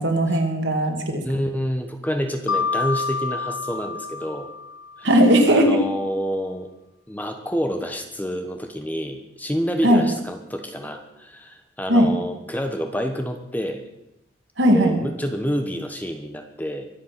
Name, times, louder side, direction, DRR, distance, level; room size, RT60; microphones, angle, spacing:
voice 1, 0.0-1.2 5.0-5.8 9.8-10.0 11.9-12.1 14.6-15.0, equal, 65° right, 3 dB, 2.6 m, -17 dB
voice 2, 1.2-4.5 5.0-5.1 5.5-6.7 7.1-13.8 14.7-16.9, equal, 10° left, 5 dB, 1.1 m, -28 dB
Mallet percussion, 2.5-5.2, left 5 dB, 85° left, 1.1 m, -28 dB
23.5 x 8.4 x 6.0 m, 0.86 s
head